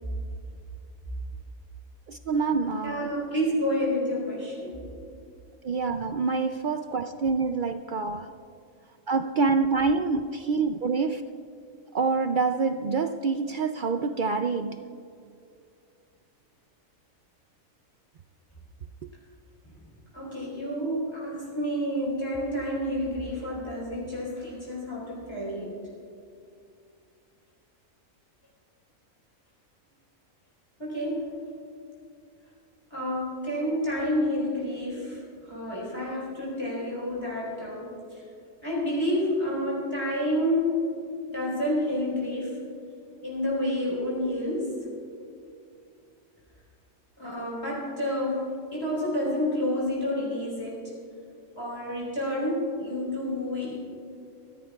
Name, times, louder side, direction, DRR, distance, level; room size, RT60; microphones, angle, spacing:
voice 1, 2.1-3.1 5.6-8.4 9.1-11.2 11.9-14.8 19.0-19.1, right 4 dB, 70° right, 0.4 m, -26 dB
voice 2, 2.8-4.8 20.1-25.7 30.8-31.3 32.9-35.2 35.5-38.2 38.6-40.8 41.3-42.5 43.2-44.7 47.2-50.9 51.6-53.7, left 1 dB, 20° left, 3.7 m, -29 dB
25.5 x 14.5 x 2.3 m
omnidirectional pair, 1.4 m